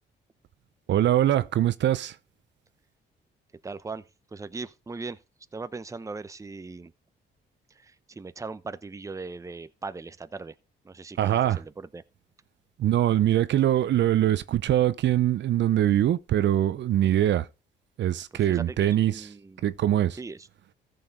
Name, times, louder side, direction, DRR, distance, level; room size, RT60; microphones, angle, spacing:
voice 1, 0.9-2.2 11.2-11.6 12.8-17.5 18.0-19.3 19.6-20.2, right 12 dB, 65° right, 0.7 m, -23 dB
voice 2, 3.6-5.2 5.5-6.9 7.7-10.5 10.8-12.0 17.0-17.1 18.3-19.6 20.1-20.5, right 3 dB, 15° right, 0.7 m, -39 dB
14.0 x 6.9 x 3.9 m
cardioid pair, 90°, 20 cm